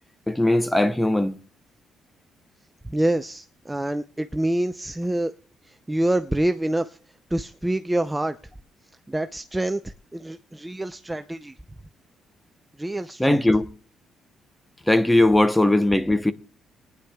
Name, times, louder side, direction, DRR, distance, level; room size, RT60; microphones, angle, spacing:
voice 1, 0.3-1.3 13.2-13.7 14.9-16.3, left 1 dB, 10° left, 0.9 m, -19 dB
voice 2, 2.8-5.3 5.9-7.0 7.3-8.4 9.1-11.5 12.8-13.4, right 1 dB, 10° right, 0.5 m, -26 dB
28.5 x 10.0 x 2.3 m
cardioid pair, 90°, 0 cm